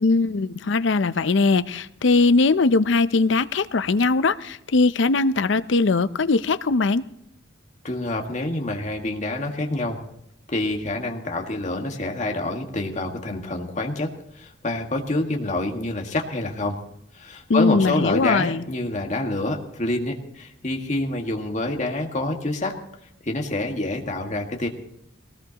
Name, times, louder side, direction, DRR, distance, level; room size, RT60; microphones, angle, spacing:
voice 1, 0.0-7.0 17.5-18.6, left 3 dB, 65° left, 14 dB, 0.6 m, -20 dB
voice 2, 7.8-10.0 10.5-14.1 14.4-16.8 17.1-22.7 23.2-24.7, left 2 dB, 40° left, 2 dB, 1.7 m, -27 dB
19.5 x 18.5 x 2.9 m, 0.77 s
head